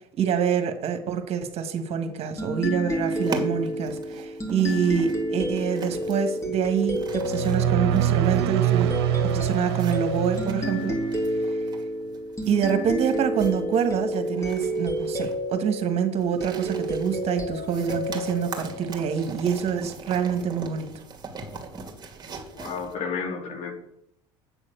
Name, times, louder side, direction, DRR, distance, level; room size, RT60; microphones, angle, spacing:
voice 1, 0.2-8.9 9.3-11.0 11.4-11.6 12.5-20.9, right 7 dB, 50° right, 7 dB, 1.7 m, -26 dB
sound 1, 2.4-19.5, equal, 20° left, 3.3 m, -30 dB
sound 2, 3.1-22.9, right 4 dB, 30° right, 2.5 m, -41 dB
sound 3, 7.1-11.4, right 10 dB, 85° right, 0.8 m, -25 dB
voice 2, 22.5-23.7, left 5 dB, 60° left, 3 dB, 2.7 m, -31 dB
8.3 x 7.2 x 6.8 m, 0.76 s
supercardioid pair, 85°, 13 cm